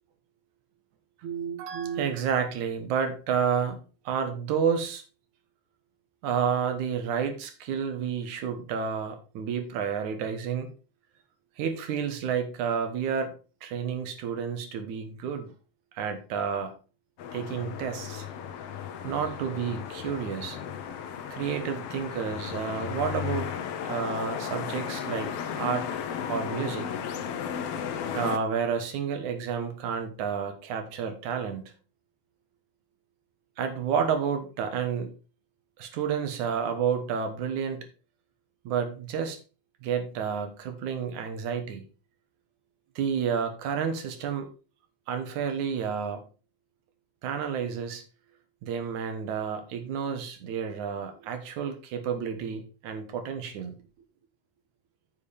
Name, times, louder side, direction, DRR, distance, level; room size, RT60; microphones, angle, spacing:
voice 1, 1.2-3.8 4.1-5.0 6.2-10.7 11.6-13.3 13.6-15.5 15.9-16.8 17.3-18.3 19.0-20.6 21.3-23.5 23.8-25.9 26.3-26.9 28.1-31.7 33.6-35.1 35.8-37.9 38.6-39.4 39.8-41.8 43.0-44.5 45.1-46.3 47.2-48.0 48.6-53.8, right 7 dB, 65° right, 7 dB, 2.6 m, -30 dB
sound 1, 17.2-28.4, left 8 dB, 70° left, 1.4 m, -35 dB
8.5 x 8.4 x 3.5 m, 0.34 s
omnidirectional pair, 3.9 m